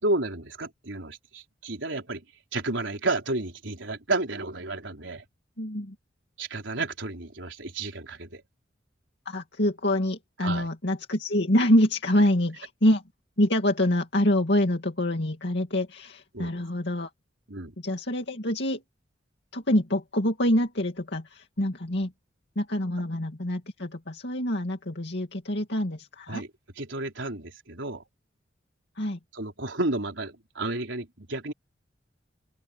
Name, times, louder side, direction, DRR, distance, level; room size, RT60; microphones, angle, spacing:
voice 1, 0.0-2.2 2.5-5.2 6.4-8.4 10.4-10.7 16.3-16.6 17.5-17.7 26.3-26.5 26.8-28.0 29.3-31.5, right 2 dB, 80° right, 4.2 m, -31 dB
voice 2, 5.6-5.9 9.3-13.0 13.4-17.1 17.8-18.8 19.5-22.1 22.6-26.4 29.0-29.2, left 1 dB, 65° left, 2.5 m, -26 dB
open air
head